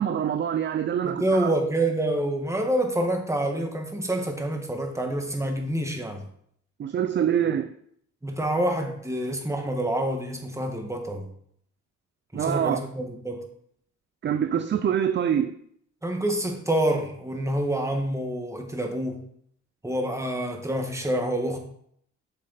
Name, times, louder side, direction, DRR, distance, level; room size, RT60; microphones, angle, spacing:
voice 1, 0.0-1.5 6.8-7.7 12.3-12.8 14.2-15.6, right 9 dB, 40° right, 0.5 m, -25 dB
voice 2, 1.0-6.2 8.2-11.3 12.3-13.4 16.0-19.2 19.8-21.6, right 1 dB, 10° right, 1.6 m, -27 dB
8.0 x 6.4 x 4.1 m
cardioid pair, 90°, 30 cm